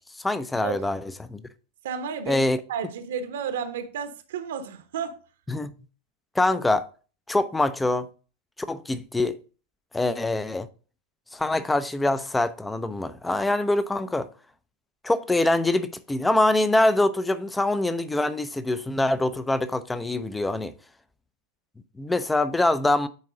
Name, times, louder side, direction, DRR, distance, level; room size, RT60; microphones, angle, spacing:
voice 1, 0.2-1.0 1.3-1.4 2.3-2.6 5.5-5.7 6.4-6.8 7.3-8.1 8.6-9.4 9.9-10.7 11.3-14.3 15.0-20.7 22.0-23.1, left 2 dB, 10° left, 0.6 m, -24 dB
voice 2, 1.8-2.4 2.7-5.2, right 7 dB, 60° right, 1.0 m, -32 dB
9.6 x 4.6 x 3.8 m
figure-of-eight pair, 90°, 0 cm